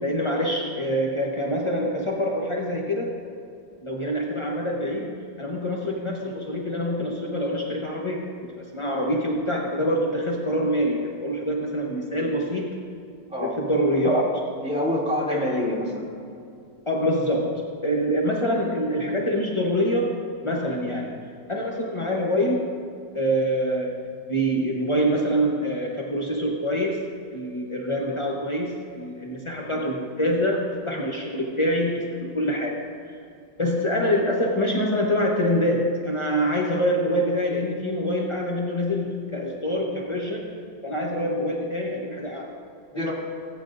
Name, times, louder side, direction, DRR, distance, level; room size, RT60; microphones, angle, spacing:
voice 1, 0.0-3.2 3.8-8.3 8.6-12.8 13.4-14.2 15.3-15.5 16.9-20.1 20.4-21.1 21.5-22.7 23.1-23.9 24.3-27.0 27.3-32.8 33.0-33.2 33.6-40.5 40.8-42.5 42.9-43.1, equal, 45° left, -2 dB, 0.3 m, -25 dB
voice 2, 14.6-16.1 42.9-43.1, left 1 dB, 5° right, -6 dB, 2.4 m, -26 dB
18.0 x 9.1 x 2.6 m, 2.5 s
omnidirectional pair, 2.1 m